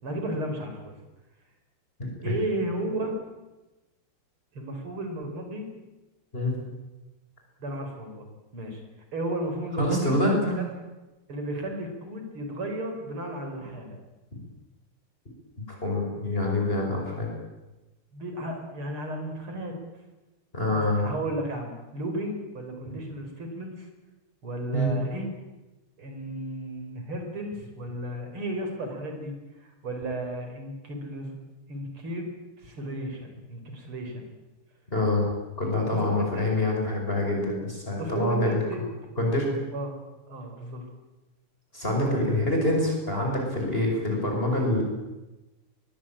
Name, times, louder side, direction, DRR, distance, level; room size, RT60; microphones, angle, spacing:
voice 1, 0.0-0.9 2.2-3.2 4.5-5.7 7.6-8.3 8.5-8.8 9.1-10.5 11.3-14.0 18.1-19.7 20.7-23.9 24.4-25.3 26.0-29.3 29.6-31.4 31.7-34.3 35.9-36.4 38.0-38.8 39.7-40.0 40.3-40.9 42.1-42.4, right 1 dB, 85° right, 4 dB, 5.6 m, -34 dB
voice 2, 2.0-2.3 6.3-6.6 9.8-10.6 15.7-17.3 20.5-21.1 22.9-23.0 24.7-24.9 34.9-35.3 35.6-38.6 39.2-39.6 41.7-44.8, left 1 dB, 25° left, 0 dB, 5.9 m, -26 dB
22.5 x 20.0 x 8.9 m, 1.1 s
omnidirectional pair, 2.3 m